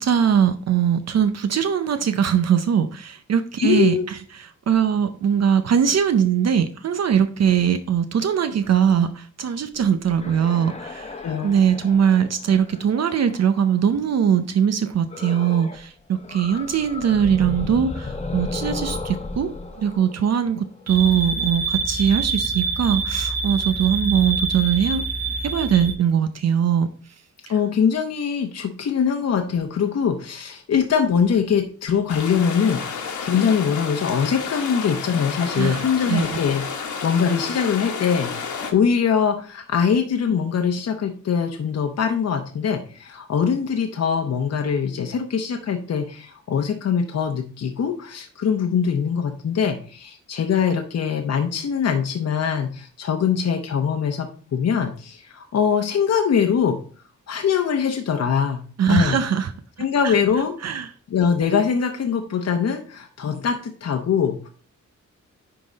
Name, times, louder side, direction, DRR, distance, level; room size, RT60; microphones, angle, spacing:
voice 1, 0.0-11.1 11.4-19.5 19.8-25.0 25.4-26.9 35.6-36.4 58.8-59.5 60.0-60.2 60.6-60.9, right 8 dB, 60° right, 10 dB, 0.6 m, -21 dB
voice 2, 3.6-4.1 11.2-11.5 27.5-56.8 57.3-59.2 59.8-60.5 61.1-64.5, left 7 dB, 60° left, 4 dB, 0.8 m, -22 dB
sound 1, 9.8-14.0 15.1-15.9 16.1-21.0, left 3 dB, 20° left, 0.9 m, -34 dB
sound 2, 20.9-25.9, right 4 dB, 25° right, 2.8 m, -26 dB
sound 3, 32.1-38.7, left 5 dB, 85° left, 1.4 m, -31 dB
10.5 x 3.9 x 4.0 m, 0.42 s
wide cardioid pair, 145°, 30 cm